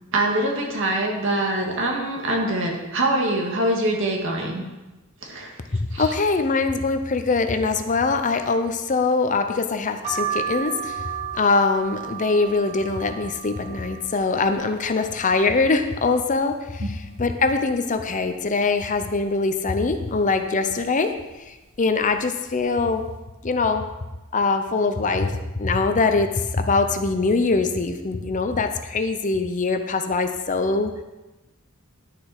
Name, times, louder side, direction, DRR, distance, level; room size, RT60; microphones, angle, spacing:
voice 1, 0.1-4.6 5.2-5.5 5.9-6.1 16.8-16.9, right 1 dB, 65° right, 0 dB, 1.9 m, -24 dB
voice 2, 5.8-11.0 11.4-21.1 21.8-23.0 23.4-23.8 24.3-25.3 25.6-30.9, left 3 dB, 35° left, 8 dB, 0.7 m, -23 dB
sound 1, 10.0-15.7 16.2-16.9 17.3-17.4 17.6-18.7 19.2-19.6 20.4-20.7 21.5-21.7 22.0-22.2, right 7 dB, 35° right, 1.8 m, -34 dB
11.0 x 6.8 x 4.9 m, 1.1 s
head